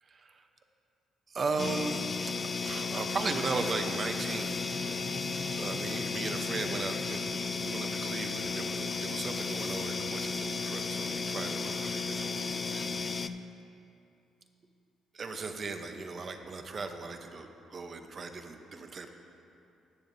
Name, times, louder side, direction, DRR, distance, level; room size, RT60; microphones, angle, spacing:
voice 1, 1.3-2.0 2.4-5.1 5.6-7.4 7.6-12.9 15.1-19.1, right 4 dB, 45° right, 6 dB, 0.8 m, -37 dB
sound 1, 1.6-13.3, left 4 dB, 30° left, 0.4 m, -34 dB
Bowed string instrument, 3.2-8.0, left 3 dB, 55° left, 1.4 m, -47 dB
18.0 x 7.2 x 2.7 m, 2.7 s
cardioid pair, 90°, 0 cm